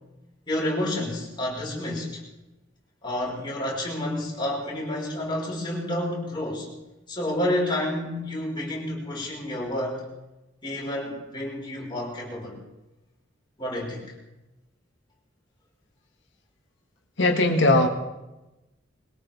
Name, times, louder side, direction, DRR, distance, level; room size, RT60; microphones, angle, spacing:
voice 1, 0.5-2.2 3.0-6.7 7.1-10.1 10.6-12.6 13.6-14.0, left 1 dB, 25° left, -4 dB, 5.4 m, -29 dB
voice 2, 17.2-17.9, left 2 dB, 75° left, 3 dB, 2.1 m, -19 dB
22.5 x 17.5 x 3.7 m, 1.0 s
head